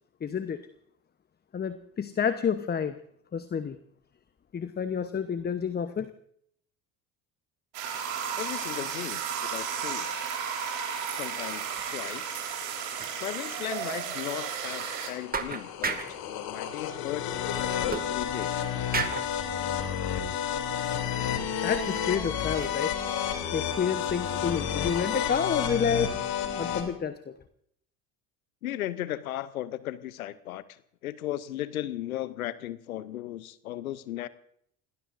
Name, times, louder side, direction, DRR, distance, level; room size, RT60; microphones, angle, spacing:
voice 1, 0.2-0.7 1.5-2.9 3.3-3.8 4.5-6.1 21.6-22.9 23.5-26.2 26.6-27.3, left 7 dB, 25° left, 12 dB, 0.9 m, -29 dB
sound 1, 7.7-15.1, right 7 dB, 70° right, 4.1 m, -33 dB
voice 2, 8.4-10.1 11.1-12.4 13.2-17.4 17.7-18.6 28.6-34.3, left 13 dB, 85° left, 17 dB, 0.7 m, -36 dB
sound 2, 11.7-12.1 12.4-12.5 13.0-13.1 13.6-13.7 14.1-14.3 15.0-15.1 15.3-16.2 17.9-18.6 18.9-19.4 20.1-20.2 20.7-20.8 21.6-22.1 22.4-23.7 24.0-24.3, right 4 dB, 20° right, 1.9 m, -35 dB
sound 3, 13.8-26.8, left 9 dB, 60° left, 3.0 m, -31 dB
28.0 x 19.0 x 2.6 m, 0.68 s
hypercardioid pair, 65°, 41 cm